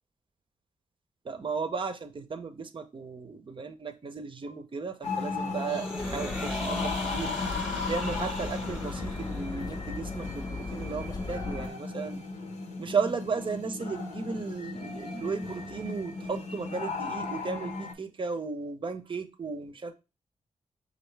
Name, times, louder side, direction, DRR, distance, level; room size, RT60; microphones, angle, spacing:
voice 1, 1.2-7.3 7.9-12.2 12.8-19.9, right 5 dB, 45° right, 8 dB, 0.6 m, -35 dB
sound 1, 5.0-17.9, left 3 dB, 70° left, 0.8 m, -36 dB
sound 2, 5.6-9.7, left 1 dB, 5° right, 0.9 m, -39 dB
sound 3, 6.0-11.7, left 3 dB, 35° left, 0.6 m, -38 dB
5.3 x 2.6 x 3.2 m, 0.30 s
cardioid pair, 75°, 12 cm